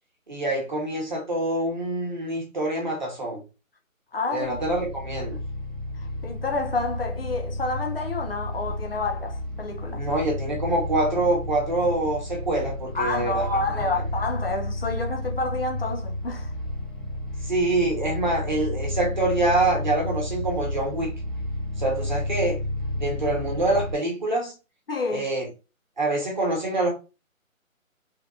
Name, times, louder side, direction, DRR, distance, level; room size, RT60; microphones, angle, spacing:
voice 1, 0.3-3.4 4.3-5.4 9.9-13.5 13.7-13.8 17.4-21.1 21.8-22.6 22.9-24.5 25.1-25.5 26.0-26.9, right 2 dB, 35° right, 1.1 m, -25 dB
voice 2, 4.1-4.6 6.0-10.1 12.9-16.5 24.9-25.3, left 3 dB, 45° left, 0.6 m, -29 dB
sound 1, 4.4-23.9, left 1 dB, ahead, 0.4 m, -32 dB
3.4 x 2.3 x 2.4 m
figure-of-eight pair, 175°, 41 cm